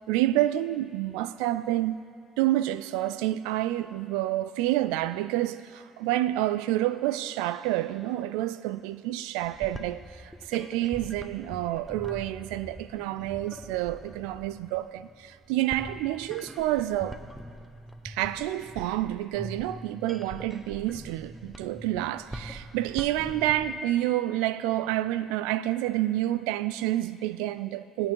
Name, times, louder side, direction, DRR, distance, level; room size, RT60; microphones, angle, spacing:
voice 1, 0.1-2.0 2.4-17.2 18.0-28.1, right 14 dB, 70° right, 0.3 m, -28 dB
sound 1, 9.4-23.8, right 1 dB, 5° right, 1.1 m, -43 dB
19.0 x 9.0 x 4.6 m
hypercardioid pair, 55°, 0 cm